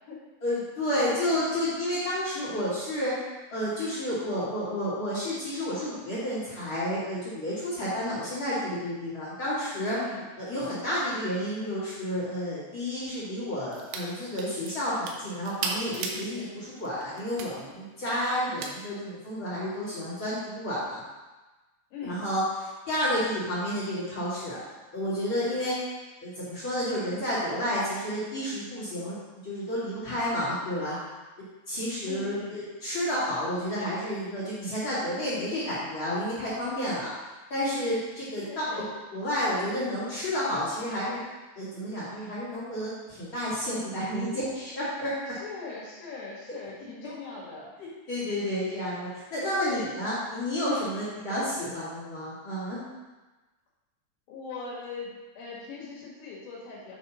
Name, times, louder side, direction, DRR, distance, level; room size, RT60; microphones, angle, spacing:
voice 1, 0.4-3.1 3.5-10.0 10.4-21.0 22.0-24.6 24.9-25.8 26.2-29.2 29.4-31.0 31.4-37.1 37.5-38.8 39.1-41.2 41.6-45.2 47.8-52.8, equal, 45° left, -11 dB, 1.7 m, -30 dB
voice 2, 9.9-10.3 16.2-16.5 21.9-22.2 32.1-32.6 38.4-38.9 45.3-47.7 49.7-49.9 54.3-57.0, left 4 dB, 70° left, -5 dB, 3.6 m, -40 dB
sound 1, 13.7-14.1 14.4-16.3 16.8-17.5 18.6-18.7, right 5 dB, 80° right, 2.7 m, -35 dB
9.0 x 5.4 x 3.0 m, 1.2 s
omnidirectional pair, 5.4 m